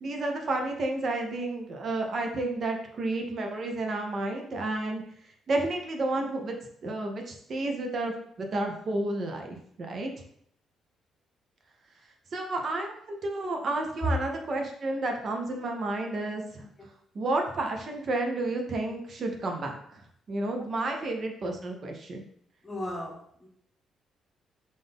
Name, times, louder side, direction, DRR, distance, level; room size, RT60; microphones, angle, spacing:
voice 1, 0.0-5.0 5.5-6.6 6.8-10.1 12.3-16.6 17.1-20.0 20.3-22.3, right 2 dB, 50° right, 2 dB, 0.7 m, -31 dB
voice 2, 20.6-21.2 22.6-23.5, left 1 dB, 25° left, 1 dB, 1.0 m, -39 dB
3.8 x 2.6 x 3.5 m, 0.65 s
cardioid pair, 90°, 0 cm